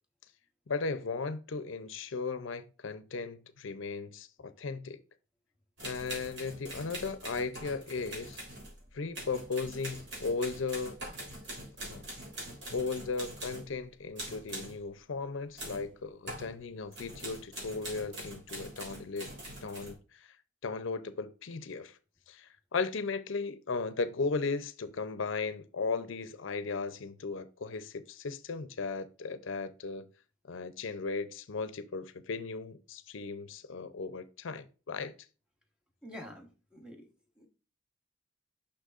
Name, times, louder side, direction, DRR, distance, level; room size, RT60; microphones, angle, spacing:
voice 1, 0.7-5.0 5.8-8.4 8.9-11.0 11.8-12.0 12.7-19.3 19.6-20.3 20.6-22.0 22.3-30.1 30.5-35.1, left 4 dB, 75° left, 0.6 m, -36 dB
sound 1, 5.8-13.8 14.2-14.8 15.6-15.9 16.3-16.5 16.9-19.9, right 1 dB, 60° right, 3.4 m, -43 dB
voice 2, 36.0-37.1 37.4-37.5, left 1 dB, 5° right, 1.1 m, -47 dB
6.4 x 6.0 x 2.5 m
head